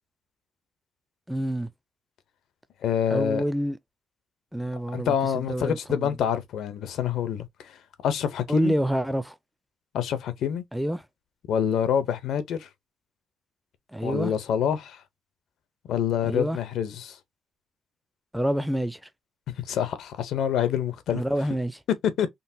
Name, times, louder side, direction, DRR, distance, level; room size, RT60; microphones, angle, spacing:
voice 1, 1.3-1.7 3.1-3.8 4.5-6.1 8.5-9.3 10.7-11.0 13.9-14.3 16.2-16.6 18.3-19.0 21.1-21.8, right 1 dB, 5° right, 0.4 m, -27 dB
voice 2, 2.8-3.4 4.9-7.7 8.0-8.7 9.9-10.6 11.5-12.7 14.0-15.0 15.9-17.2 19.5-21.2 22.2-22.3, left 8 dB, 75° left, 0.6 m, -26 dB
3.8 x 2.1 x 2.7 m
cardioid pair, 90°, 0 cm